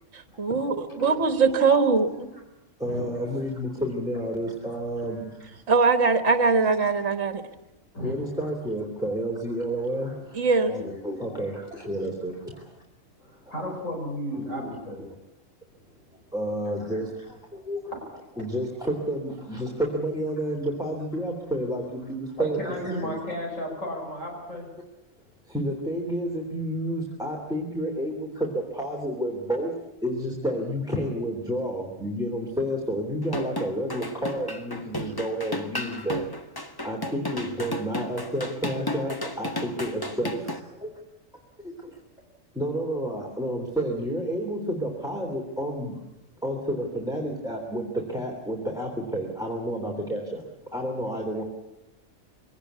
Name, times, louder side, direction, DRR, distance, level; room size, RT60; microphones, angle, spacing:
voice 1, 0.1-2.1 5.7-7.4 10.3-10.7, right 4 dB, 65° right, 9 dB, 1.9 m, -21 dB
voice 2, 0.7-2.2 2.8-5.4 8.0-10.8 11.0-12.7 13.4-13.5 14.3-14.7 16.1-17.8 18.4-23.3 25.4-29.8 30.0-36.6 36.8-40.9 41.6-42.0 42.5-46.0 46.4-51.4, equal, 5° right, 0 dB, 3.3 m, -30 dB
voice 3, 7.9-8.5 10.0-10.2 10.7-10.9 11.5-11.9 13.2-15.0 17.9-18.1 22.4-24.7, equal, 80° left, 1 dB, 5.5 m, -34 dB
sound 1, 33.2-40.6, left 1 dB, 20° left, 1.3 m, -33 dB
23.0 x 18.5 x 8.3 m, 0.96 s
omnidirectional pair, 1.3 m